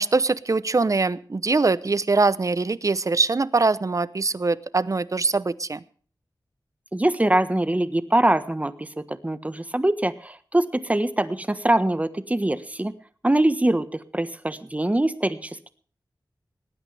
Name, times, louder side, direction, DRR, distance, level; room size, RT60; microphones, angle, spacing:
voice 1, 0.0-5.8, right 3 dB, 45° right, 17 dB, 0.8 m, -22 dB
voice 2, 6.9-12.9 13.2-15.6, right 1 dB, 20° right, 12 dB, 1.3 m, -23 dB
20.0 x 15.5 x 3.4 m, 0.43 s
wide cardioid pair, 80°, 8 cm